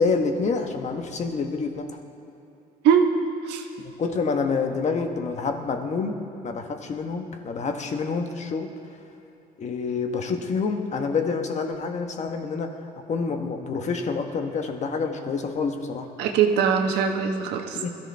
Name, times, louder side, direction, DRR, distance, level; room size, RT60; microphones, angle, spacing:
voice 1, 0.0-2.0 3.8-6.2 6.4-8.7 9.6-12.8 13.1-16.1 17.7-17.9, left 4 dB, 45° left, 5 dB, 1.3 m, -27 dB
voice 2, 16.2-17.8, right 7 dB, 85° right, 4 dB, 1.3 m, -21 dB
21.5 x 14.0 x 3.5 m, 3.0 s
cardioid pair, 110°, 17 cm